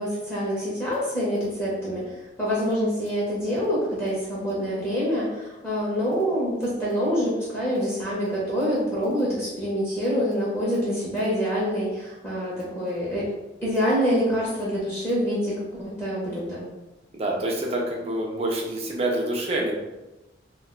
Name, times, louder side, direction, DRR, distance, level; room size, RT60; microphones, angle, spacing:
voice 1, 0.0-13.3 13.6-16.7, equal, 10° left, -8 dB, 0.7 m, -26 dB
voice 2, 17.1-19.8, right 1 dB, 35° right, -1 dB, 0.5 m, -27 dB
2.3 x 2.2 x 3.6 m, 1.0 s
head